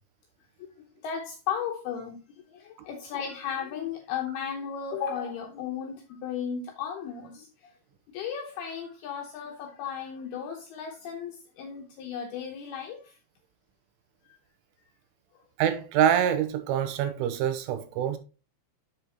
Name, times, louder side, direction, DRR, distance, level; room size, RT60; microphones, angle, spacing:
voice 1, 1.0-7.8 8.1-13.2 15.3-15.4, left 7 dB, 80° left, 2.2 m, -35 dB
voice 2, 15.6-18.2, right 9 dB, 90° right, 3.2 m, -25 dB
7.9 x 6.7 x 2.9 m
omnidirectional pair, 5.6 m